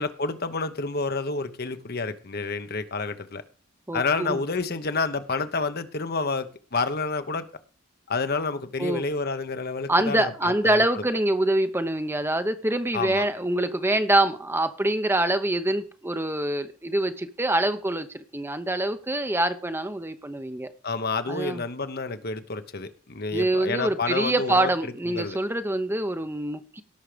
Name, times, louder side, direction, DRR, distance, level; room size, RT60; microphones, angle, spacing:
voice 1, 0.0-3.4 3.9-7.5 8.1-11.0 12.9-13.2 20.8-24.7 25.1-25.4, left 4 dB, 50° left, 1.1 m, -29 dB
voice 2, 3.9-4.4 8.8-9.0 9.9-18.1 18.3-20.7 21.3-21.6 23.3-26.8, right 1 dB, 10° right, 0.8 m, -25 dB
17.0 x 6.5 x 5.1 m
head